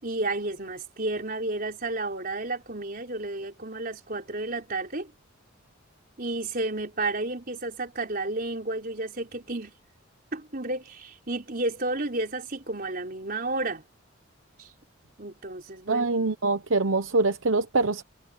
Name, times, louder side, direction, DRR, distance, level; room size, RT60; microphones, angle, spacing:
voice 1, 0.0-5.1 6.2-9.7 10.3-13.8 14.6-14.7 15.2-16.1, right 2 dB, 45° right, 4.1 m, -31 dB
voice 2, 15.9-18.0, right 3 dB, 80° right, 1.0 m, -24 dB
head